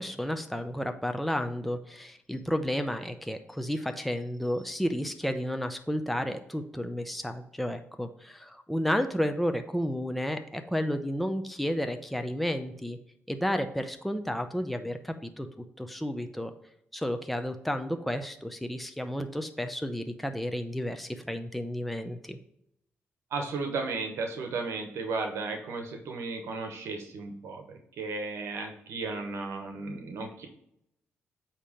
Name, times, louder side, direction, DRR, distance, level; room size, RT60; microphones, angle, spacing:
voice 1, 0.0-13.0 13.3-16.5 16.9-22.4, equal, ahead, 7 dB, 0.6 m, -32 dB
voice 2, 23.3-30.5, right 3 dB, 80° right, 4 dB, 0.9 m, -34 dB
8.3 x 2.9 x 4.9 m, 0.75 s
cardioid pair, 75°, 5 cm